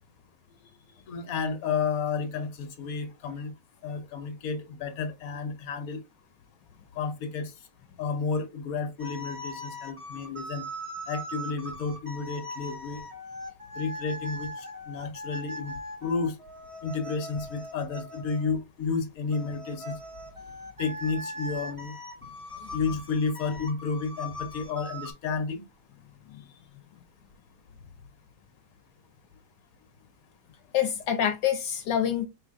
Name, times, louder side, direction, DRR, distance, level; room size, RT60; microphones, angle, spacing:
voice 1, 1.1-3.5 3.8-6.0 6.9-7.5 8.0-10.7 11.1-13.0 13.7-15.7 16.0-16.4 16.8-19.9 20.8-21.9 22.7-25.6, left 5 dB, 60° left, 1.3 m, -31 dB
sound 1, 9.0-18.6 19.3-25.1, equal, 25° right, 0.9 m, -40 dB
voice 2, 30.7-32.3, left 9 dB, 75° left, 1.2 m, -26 dB
4.9 x 3.4 x 2.5 m
omnidirectional pair, 1.9 m